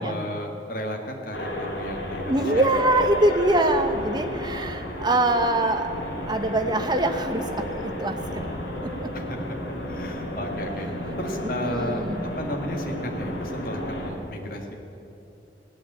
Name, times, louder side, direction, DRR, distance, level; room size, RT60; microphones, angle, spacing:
voice 1, 0.0-2.7 2.9-3.1 9.1-9.4 9.8-10.9 11.2-14.6, left 1 dB, 55° left, 2 dB, 1.8 m, -33 dB
sound 1, 1.3-14.1, left 1 dB, 90° left, 2.5 m, -32 dB
voice 2, 2.3-5.9 6.2-8.5 8.8-9.1 11.6-12.3, right 1 dB, 25° right, 6 dB, 1.0 m, -24 dB
16.5 x 8.7 x 8.7 m, 2.9 s
head